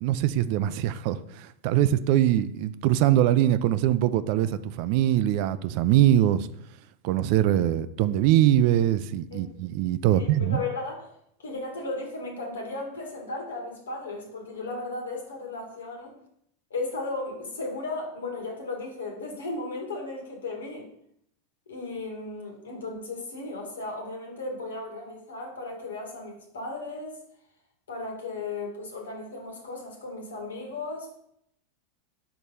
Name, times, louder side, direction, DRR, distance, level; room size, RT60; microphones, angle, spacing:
voice 1, 0.0-6.5 7.0-10.6, right 12 dB, 55° right, 14 dB, 0.4 m, -23 dB
voice 2, 10.1-11.0 11.4-16.1 16.7-20.9 21.7-27.2 27.9-31.2, left 3 dB, 85° left, 1 dB, 1.7 m, -35 dB
4.7 x 4.3 x 5.4 m, 0.74 s
hypercardioid pair, 100°, 0 cm